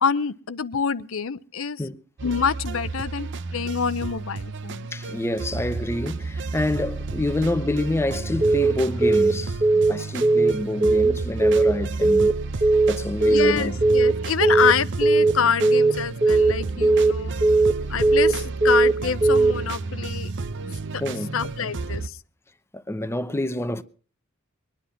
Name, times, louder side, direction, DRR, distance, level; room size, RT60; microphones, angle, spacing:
voice 1, 0.0-1.8 2.2-4.9 13.2-17.3 17.9-20.3 21.3-22.1, left 6 dB, 70° left, 0.6 m, -26 dB
sound 1, 2.2-22.1, right 3 dB, 60° right, 0.7 m, -32 dB
voice 2, 4.9-9.6 9.9-12.3 12.9-13.8 21.0-21.4 22.7-23.8, left 1 dB, 10° left, 0.7 m, -27 dB
Telephone, 8.4-8.7 9.0-9.3 9.6-9.9 10.2-10.5 10.8-11.1 11.4-11.7 12.0-12.3 12.6-12.9 13.2-13.5 13.8-14.1 14.4-14.7 15.0-15.3 15.6-15.9 16.2-16.5 16.8-17.1 17.4-17.7 18.0-18.3 18.6-18.9 19.2-19.5, right 3 dB, 30° right, 1.5 m, -17 dB
22.0 x 10.0 x 5.7 m
head